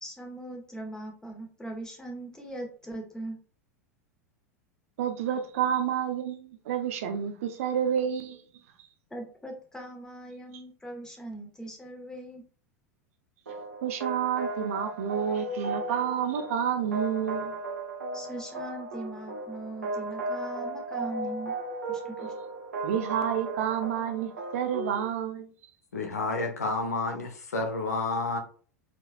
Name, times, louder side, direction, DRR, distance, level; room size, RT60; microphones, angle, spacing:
voice 1, 0.0-3.4 9.1-12.4 18.1-21.6 21.9-22.3, right 1 dB, 5° left, 1.5 m, -40 dB
voice 2, 5.0-8.4 13.8-17.5 22.8-25.5, right 9 dB, 55° right, 0.8 m, -29 dB
sound 1, 13.5-25.1, right 2 dB, 70° right, 1.1 m, -36 dB
voice 3, 25.9-28.4, left 3 dB, 70° left, 1.1 m, -30 dB
4.7 x 4.0 x 2.4 m
figure-of-eight pair, 85°, 9 cm